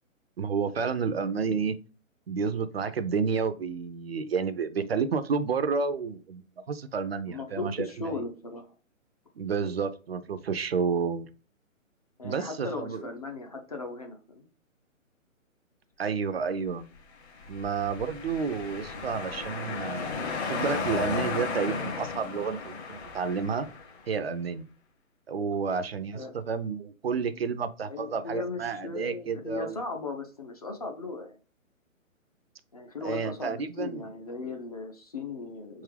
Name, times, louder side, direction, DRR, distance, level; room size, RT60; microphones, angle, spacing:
voice 1, 0.4-1.8 2.3-6.4 6.7-8.2 9.4-11.3 12.2-13.0 16.0-16.9 17.5-20.1 20.5-23.7 24.1-24.6 25.3-29.8 33.0-34.1, right 5 dB, 50° right, 11 dB, 0.4 m, -30 dB
voice 2, 7.3-8.7 12.2-14.5 26.1-26.4 27.9-31.4 32.7-35.8, left 3 dB, 30° left, 3 dB, 0.4 m, -37 dB
sound 1, 17.3-24.0, left 4 dB, 50° left, 1.3 m, -34 dB
4.3 x 3.6 x 3.2 m, 0.35 s
figure-of-eight pair, 140°, 41 cm